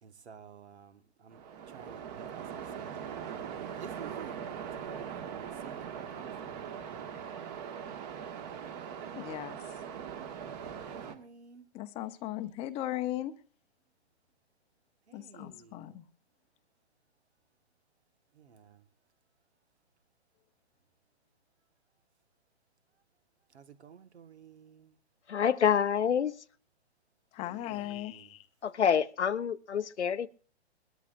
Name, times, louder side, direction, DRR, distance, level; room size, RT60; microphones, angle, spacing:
voice 1, 0.0-7.3 8.3-8.6 10.5-11.7 15.1-16.0 18.3-18.8 23.5-25.0 27.4-28.4, right 7 dB, 75° right, 1.6 m, -53 dB
Waves surf, 1.3-11.1, right 8 dB, 40° right, 1.9 m, -41 dB
voice 2, 9.1-9.6 11.7-13.3 15.1-16.0 27.3-28.5, left 14 dB, 20° left, 0.8 m, -37 dB
voice 3, 25.3-26.3 28.6-30.3, left 8 dB, 90° left, 0.9 m, -27 dB
22.0 x 13.5 x 2.6 m
hypercardioid pair, 140°, 33 cm